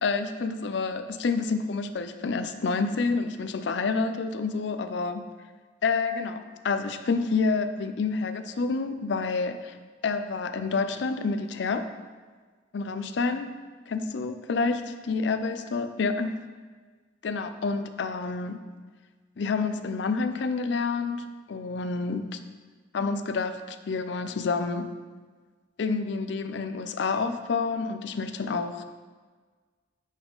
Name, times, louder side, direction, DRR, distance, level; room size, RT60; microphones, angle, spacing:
voice 1, 0.0-5.2 5.8-9.7 10.0-11.9 12.7-13.5 13.9-16.4 17.2-18.6 19.4-22.4 22.9-24.9 25.8-28.8, left 4 dB, 65° left, 9 dB, 0.4 m, -28 dB
10.5 x 3.9 x 3.6 m, 1.4 s
head